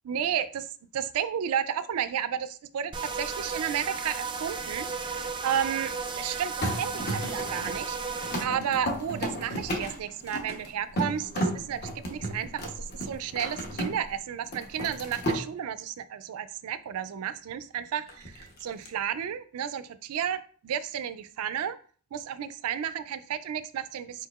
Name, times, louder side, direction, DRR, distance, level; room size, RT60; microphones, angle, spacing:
voice 1, 0.1-0.7 0.9-8.0 8.4-21.8 22.1-24.3, right 9 dB, 85° right, 14 dB, 0.4 m, -32 dB
sound 1, 2.9-8.5, right 5 dB, 20° right, 0.4 m, -34 dB
sound 2, 6.6-14.1 14.4-15.4 18.1-18.9, equal, 45° left, 0.9 m, -33 dB
4.7 x 4.5 x 2.4 m, 0.43 s
head